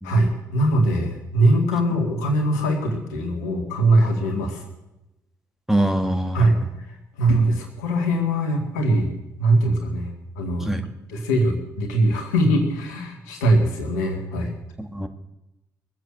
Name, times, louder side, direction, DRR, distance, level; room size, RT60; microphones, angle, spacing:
voice 1, 0.0-4.6 6.3-6.6 7.2-10.8 11.1-14.5, right 1 dB, 80° left, 3 dB, 2.0 m, -21 dB
voice 2, 5.7-6.7 10.6-10.9 14.8-15.1, right 1 dB, 5° right, 5 dB, 1.8 m, -24 dB
20.5 x 7.7 x 7.6 m, 0.95 s
figure-of-eight pair, 40°, 9 cm